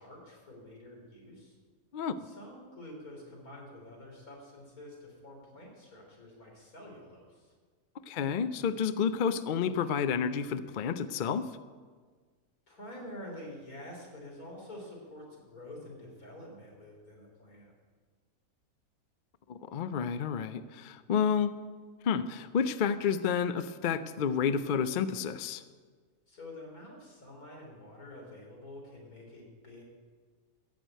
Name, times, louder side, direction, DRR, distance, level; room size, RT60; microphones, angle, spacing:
voice 1, 0.0-1.6 2.2-7.5 12.7-17.7 26.3-29.8, left 1 dB, 90° left, -1 dB, 3.9 m, -48 dB
voice 2, 8.1-11.5 19.5-21.5 22.0-25.6, left 7 dB, 55° left, 13 dB, 0.5 m, -30 dB
14.5 x 6.4 x 9.0 m, 1.5 s
omnidirectional pair, 1.5 m